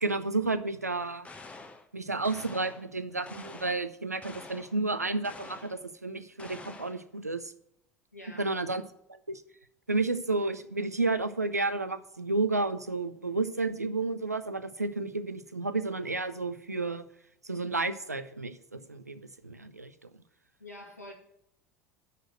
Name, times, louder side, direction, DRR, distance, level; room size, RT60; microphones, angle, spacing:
voice 1, 0.0-1.3 1.9-7.5 8.4-8.8 9.1-9.4 9.9-17.0 17.4-20.1, right 3 dB, 85° right, 12 dB, 0.5 m, -31 dB
sound 1, 1.2-1.9 2.2-2.9 3.3-3.9 4.2-4.8 5.2-5.8 6.4-7.0, left 3 dB, 15° left, 0.9 m, -47 dB
voice 2, 8.1-8.5 20.6-21.1, left 1 dB, 90° left, 1 dB, 1.7 m, -46 dB
6.7 x 6.2 x 7.6 m, 0.75 s
figure-of-eight pair, 70°, 8 cm